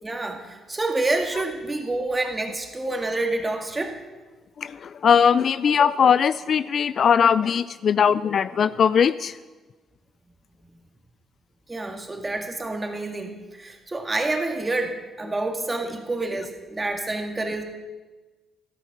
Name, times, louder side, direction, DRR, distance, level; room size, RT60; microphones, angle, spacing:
voice 1, 0.0-4.0 11.7-17.6, right 2 dB, 20° right, 4 dB, 2.1 m, -28 dB
voice 2, 4.6-9.4, left 7 dB, 55° left, 15 dB, 0.3 m, -20 dB
13.0 x 12.5 x 6.0 m, 1.2 s
cardioid pair, 90°, 0 cm